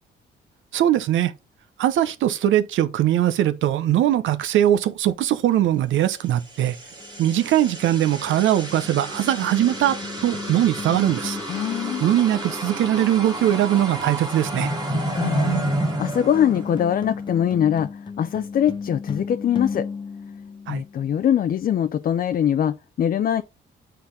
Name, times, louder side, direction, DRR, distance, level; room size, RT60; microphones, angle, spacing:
voice 1, 0.7-1.3 1.8-6.8 7.2-10.0 10.2-11.4 12.0-14.7 20.7-20.8, right 12 dB, 75° right, 0.8 m, -21 dB
sound 1, 6.5-17.2, right 2 dB, 20° right, 2.2 m, -30 dB
sound 2, 7.0-21.2, left 5 dB, 25° left, 0.9 m, -36 dB
voice 2, 11.5-12.0 14.9-15.5 16.0-17.9 18.2-19.9 20.7-23.4, left 9 dB, 45° left, 0.5 m, -22 dB
8.4 x 3.9 x 4.0 m
cardioid pair, 90°, 20 cm